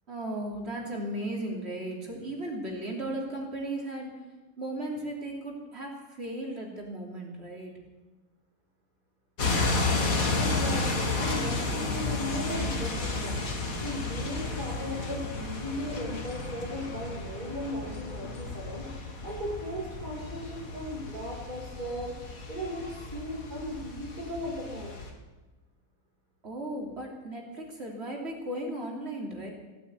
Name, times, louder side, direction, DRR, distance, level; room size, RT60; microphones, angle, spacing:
voice 1, 0.1-4.1 4.6-7.7 26.4-29.5, right 1 dB, 50° right, -1 dB, 3.4 m, -36 dB
sound 1, 9.4-25.1, left 3 dB, 75° left, 2.5 m, -32 dB
voice 2, 10.3-22.2 22.5-25.0 26.7-26.8, left 1 dB, 35° right, -6 dB, 3.1 m, -37 dB
16.0 x 9.1 x 8.4 m, 1.2 s
omnidirectional pair, 1.5 m